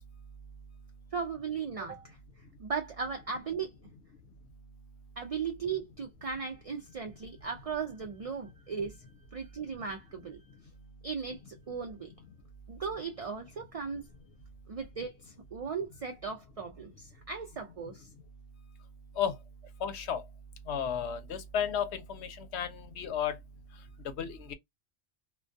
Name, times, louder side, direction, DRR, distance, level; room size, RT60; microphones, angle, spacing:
voice 1, 1.1-2.2 2.6-3.7 5.2-9.0 9.3-10.4 11.0-12.1 12.7-14.1 14.7-18.1, right 5 dB, 55° right, 0.4 m, -37 dB
voice 2, 19.8-20.2 20.7-23.3 24.2-24.5, left 8 dB, 75° left, 0.9 m, -33 dB
2.2 x 2.2 x 2.4 m
omnidirectional pair, 1.2 m